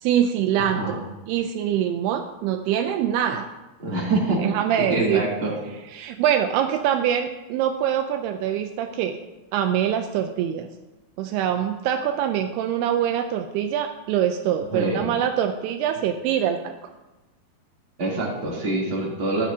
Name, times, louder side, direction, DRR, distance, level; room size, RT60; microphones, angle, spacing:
voice 1, 0.0-1.0 1.3-3.5 4.4-5.2 5.9-9.2 9.5-10.7 11.2-16.9, right 9 dB, 85° right, 6 dB, 2.6 m, -24 dB
voice 2, 0.6-1.0 3.8-4.4 4.8-5.5 14.7-15.1 18.0-19.5, right 2 dB, 35° right, -4 dB, 3.5 m, -25 dB
16.0 x 11.5 x 2.8 m, 1.1 s
omnidirectional pair, 4.7 m